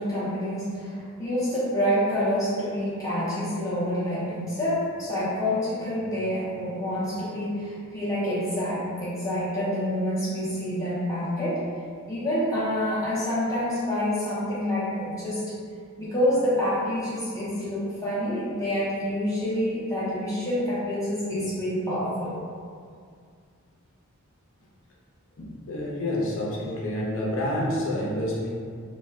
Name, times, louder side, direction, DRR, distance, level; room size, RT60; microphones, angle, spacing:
voice 1, 0.0-11.6 12.1-15.4 16.0-22.3, equal, 15° left, -11 dB, 0.5 m, -27 dB
voice 2, 25.4-28.5, left 1 dB, 60° left, -4 dB, 0.6 m, -28 dB
2.2 x 2.1 x 3.4 m, 2.2 s
head